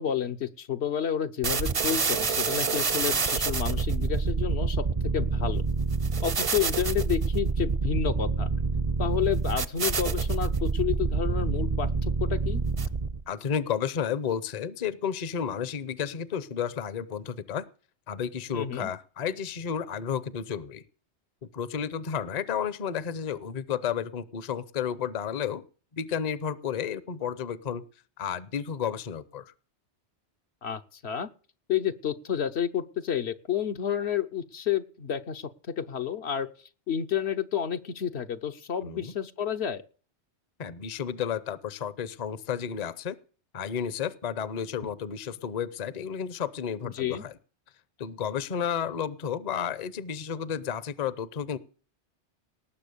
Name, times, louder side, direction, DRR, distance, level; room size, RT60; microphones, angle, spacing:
voice 1, 0.0-4.8 5.1-5.6 6.2-8.5 9.0-12.6 18.5-18.9 30.6-31.3 31.7-36.5 36.9-39.8 47.0-47.2, left 9 dB, 75° left, 7 dB, 1.2 m, -30 dB
sound 1, 1.4-13.2, right 4 dB, 35° right, 0.6 m, -27 dB
voice 2, 13.3-17.7 18.1-20.8 21.5-25.6 25.9-27.8 28.2-29.5 38.8-39.1 40.6-43.2 43.5-47.4 48.0-51.6, left 8 dB, 45° left, 17 dB, 0.8 m, -32 dB
19.0 x 7.1 x 6.8 m, 0.40 s
omnidirectional pair, 1.1 m